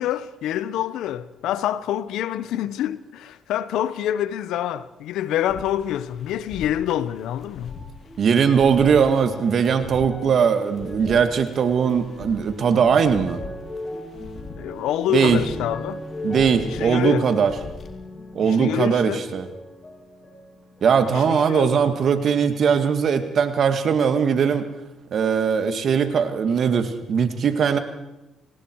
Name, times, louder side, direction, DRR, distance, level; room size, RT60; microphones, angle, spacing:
voice 1, 0.0-7.8 14.6-16.0 16.6-17.3 18.4-19.2 21.1-21.8, left 11 dB, 85° left, 0.9 m, -26 dB
sound 1, 5.5-18.0, left 4 dB, 50° left, 2.6 m, -42 dB
sound 2, 7.6-21.1 21.4-22.4 23.1-23.2, left 1 dB, 25° left, 7.6 m, -38 dB
voice 2, 8.2-13.4 15.1-15.4 16.2-17.5 18.3-19.5 20.8-24.7 25.1-27.8, right 6 dB, 60° right, 2.1 m, -20 dB
28.5 x 19.5 x 4.7 m
cardioid pair, 90°, 0 cm